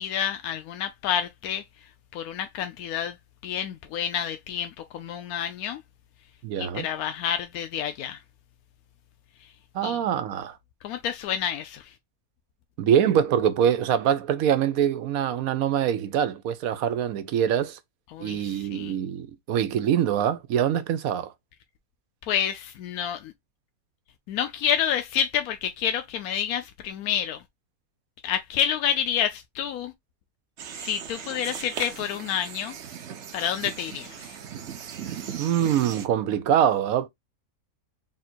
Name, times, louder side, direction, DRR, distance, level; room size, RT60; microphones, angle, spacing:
voice 1, 0.0-1.6 2.1-3.2 3.4-5.8 6.6-8.2 9.8-10.0 10.8-11.9 18.1-19.0 22.2-23.3 24.3-27.4 28.2-29.9 30.7-32.8 33.3-34.4, left 9 dB, 80° left, 1.1 m, -29 dB
voice 2, 6.4-6.9 9.7-10.6 12.8-17.8 18.2-21.3 35.4-37.1, right 9 dB, 75° right, 1.1 m, -24 dB
sound 1, 30.6-36.1, right 8 dB, 60° right, 0.9 m, -38 dB
3.7 x 2.5 x 4.2 m
omnidirectional pair, 1.5 m